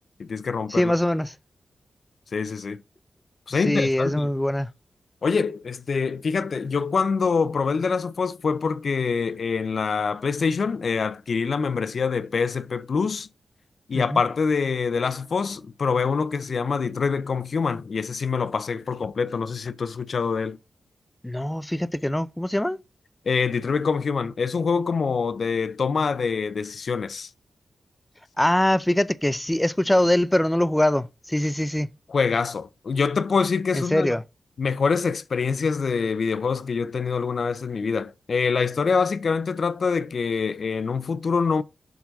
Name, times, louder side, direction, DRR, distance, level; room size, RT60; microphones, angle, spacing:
voice 1, 0.2-0.9 2.3-2.8 3.5-4.3 5.2-13.3 13.9-20.6 23.2-27.3 32.1-34.1 34.6-41.6, left 5 dB, 65° left, 0.6 m, -25 dB
voice 2, 0.7-1.3 3.6-4.7 13.9-14.2 21.2-22.8 28.4-31.9 33.7-34.2, left 1 dB, 10° left, 0.5 m, -23 dB
7.1 x 4.0 x 6.1 m
cardioid pair, 70°, 0 cm